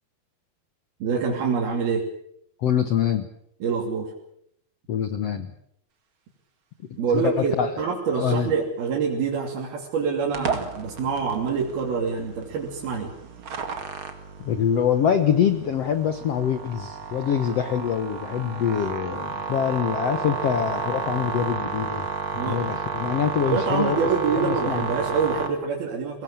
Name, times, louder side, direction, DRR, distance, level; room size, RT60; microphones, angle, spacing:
voice 1, 1.0-2.1 3.6-4.1 7.0-13.1 22.3-22.6 23.5-26.2, right 5 dB, 70° right, -3 dB, 4.9 m, -26 dB
voice 2, 2.6-3.3 4.9-5.5 7.1-7.8 8.1-8.5 14.4-22.1 22.4-24.0 24.3-24.9, left 8 dB, 70° left, 10 dB, 1.5 m, -24 dB
sound 1, 10.3-25.5, right 6 dB, 40° right, 2.4 m, -32 dB
23.0 x 19.0 x 8.8 m, 0.74 s
omnidirectional pair, 4.5 m